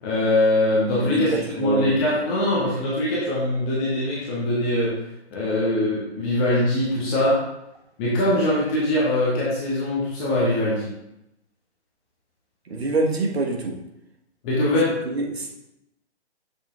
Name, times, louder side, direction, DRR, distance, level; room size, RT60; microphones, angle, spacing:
voice 1, 0.0-1.3 1.6-4.9 5.3-7.4 8.0-10.9 14.4-14.9, left 1 dB, 10° left, -7 dB, 0.5 m, -22 dB
voice 2, 1.0-2.0 12.7-13.8 15.0-15.6, right 3 dB, 65° right, 0 dB, 1.5 m, -25 dB
7.0 x 6.1 x 2.5 m, 0.85 s
figure-of-eight pair, 130°, 34 cm